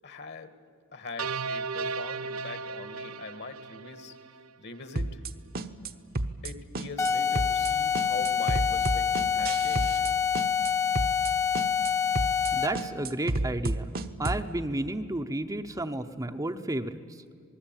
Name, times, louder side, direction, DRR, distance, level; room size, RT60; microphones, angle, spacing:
voice 1, 0.0-0.5 0.9-4.2 4.6-5.2 6.4-10.1, left 4 dB, 50° left, 11 dB, 1.7 m, -42 dB
sound 1, 1.2-4.5, right 4 dB, 70° right, 0.6 m, -35 dB
sound 2, 5.0-5.3 5.6-5.9 6.2-6.5 6.8-7.1 7.4-7.7 8.0-10.1 10.4-10.7 11.0-11.3 11.6-11.9 12.2-12.5 12.8-14.5, right 2 dB, 45° right, 1.0 m, -30 dB
sound 3, 7.0-12.9, left 7 dB, 15° left, 0.9 m, -26 dB
voice 2, 12.5-17.0, right 1 dB, 15° right, 6 dB, 0.8 m, -32 dB
27.0 x 20.0 x 9.0 m, 2.2 s
head